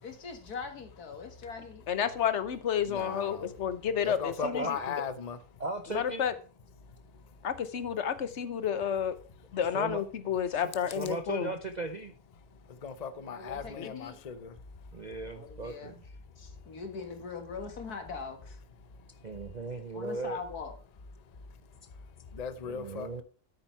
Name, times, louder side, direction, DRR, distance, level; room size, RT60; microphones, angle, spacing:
voice 1, 0.0-1.8 13.3-14.2 15.4-16.0 16.4-18.6 19.9-20.7, left 5 dB, 80° left, 2.2 m, -41 dB
voice 2, 1.9-4.8 5.9-6.3 7.4-9.1 9.5-11.5 13.8-13.9, left 8 dB, 55° left, 1.1 m, -31 dB
voice 3, 2.9-3.5 4.0-5.4 12.7-14.6 22.3-23.2, left 6 dB, 35° left, 0.7 m, -37 dB
voice 4, 4.4-4.7 5.6-6.3 9.7-10.0 10.8-12.1 14.9-16.0 19.2-20.4 22.6-23.2, right 3 dB, 45° right, 0.5 m, -37 dB
9.8 x 8.7 x 4.6 m
omnidirectional pair, 1.6 m